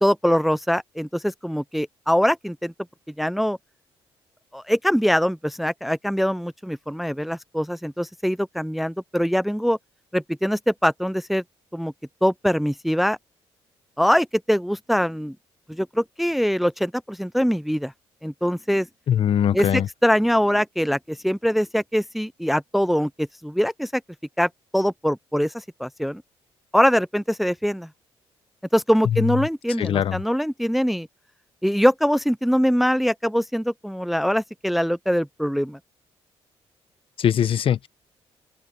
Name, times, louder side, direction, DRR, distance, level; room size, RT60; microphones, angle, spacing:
voice 1, 0.0-2.7 3.2-3.6 4.5-9.8 10.1-11.4 11.7-11.9 12.2-13.2 14.0-15.4 15.7-17.9 18.2-18.9 19.5-24.0 24.4-26.2 26.7-27.9 28.7-31.1 31.6-35.8, equal, ahead, 0.5 m, -23 dB
voice 2, 19.1-19.9 29.1-29.4 29.8-30.2 37.2-37.9, left 9 dB, 60° left, 1.1 m, -21 dB
open air
cardioid pair, 85°, 10 cm